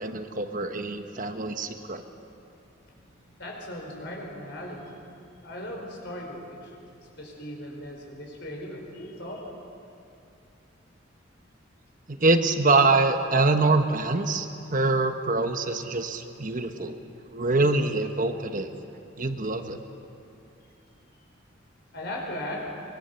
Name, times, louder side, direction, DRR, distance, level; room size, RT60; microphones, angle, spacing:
voice 1, 0.0-2.0 12.1-17.0 17.3-18.7 19.2-19.8, right 3 dB, 40° right, 7 dB, 1.2 m, -24 dB
voice 2, 3.2-5.0 5.4-9.5 21.9-22.7, left 1 dB, 60° left, 0 dB, 5.1 m, -38 dB
23.5 x 22.5 x 7.0 m, 2.6 s
head